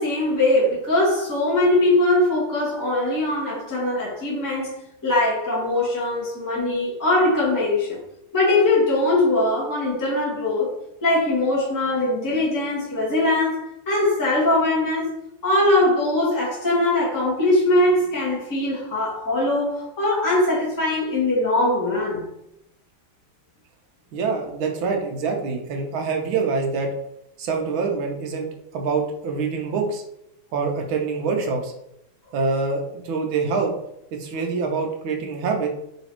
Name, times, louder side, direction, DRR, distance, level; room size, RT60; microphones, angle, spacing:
voice 1, 0.0-4.7 5.0-8.0 8.3-10.7 11.0-15.1 15.4-22.3, left 2 dB, 10° left, -6 dB, 1.0 m, -21 dB
voice 2, 24.1-26.9 27.4-28.5 28.7-30.0 30.5-31.7 32.3-33.7 34.1-35.7, right 4 dB, 75° right, 2 dB, 1.4 m, -25 dB
4.0 x 3.0 x 2.9 m, 0.78 s
omnidirectional pair, 2.4 m